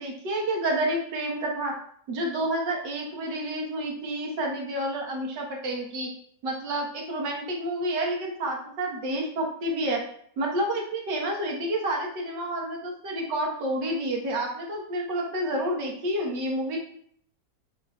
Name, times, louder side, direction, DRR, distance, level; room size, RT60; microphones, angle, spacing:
voice 1, 0.0-1.7 2.1-6.1 6.4-10.0 10.4-16.8, right 1 dB, 85° right, 0 dB, 2.0 m, -29 dB
7.4 x 5.9 x 2.4 m, 0.63 s
omnidirectional pair, 1.9 m